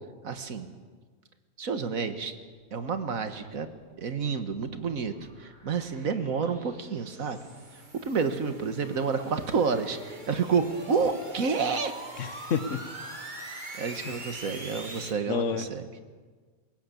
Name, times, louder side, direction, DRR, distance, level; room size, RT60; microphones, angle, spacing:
voice 1, 0.2-0.7 1.6-2.3 2.7-3.7 4.0-5.1 5.4-7.4 7.9-11.9 13.8-15.9, right 5 dB, 70° right, 9 dB, 1.8 m, -29 dB
sound 1, 3.8-15.1, right 2 dB, 30° right, 2.7 m, -44 dB
voice 2, 12.2-12.8 14.0-14.1 15.3-15.6, left 6 dB, 60° left, 11 dB, 1.5 m, -29 dB
21.0 x 18.0 x 8.5 m, 1.5 s
omnidirectional pair, 1.5 m